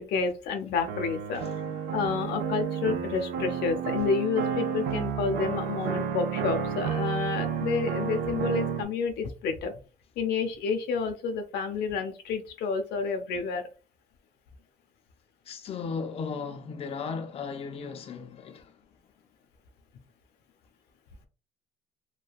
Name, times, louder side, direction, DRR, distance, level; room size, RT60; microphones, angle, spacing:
voice 1, 0.0-1.4 1.7-9.7 10.2-13.7, left 5 dB, 80° left, 0.6 m, -30 dB
sound 1, 0.9-8.8, right 7 dB, 75° right, 0.5 m, -31 dB
voice 2, 1.3-1.7 15.5-18.8, left 5 dB, 35° left, 0.4 m, -36 dB
3.2 x 2.2 x 2.4 m
cardioid pair, 110°, 17 cm